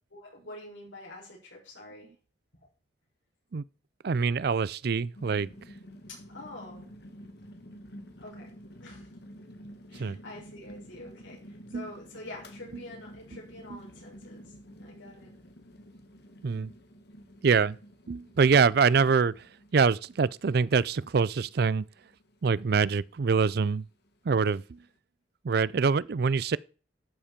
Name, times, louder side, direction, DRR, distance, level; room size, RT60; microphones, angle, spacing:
voice 1, 0.1-2.2 6.1-6.9 8.2-8.5 8.8-9.1 9.9-15.3, left 1 dB, 80° left, 6.3 m, -46 dB
voice 2, 4.0-5.5 9.9-10.2 11.7-11.9 12.7-12.8 13.7-13.8 16.4-16.7 17.4-17.8 18.1-21.8 22.4-23.8 24.2-24.8 25.4-26.6, right 5 dB, 55° right, 0.4 m, -25 dB
sound 1, 5.1-25.0, equal, 60° left, 1.8 m, -50 dB
12.5 x 7.2 x 5.2 m
head